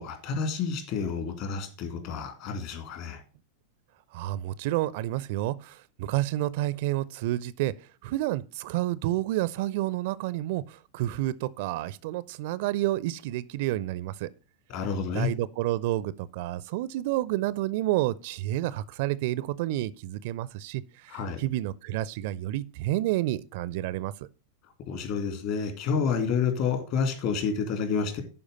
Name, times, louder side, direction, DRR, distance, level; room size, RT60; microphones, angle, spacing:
voice 1, 0.0-3.2 14.7-15.3 21.1-21.4 24.9-28.2, left 6 dB, 45° left, 2.6 m, -29 dB
voice 2, 4.1-14.3 15.1-24.3, right 15 dB, 50° right, 0.4 m, -30 dB
11.0 x 4.9 x 5.4 m
figure-of-eight pair, 90°, 0 cm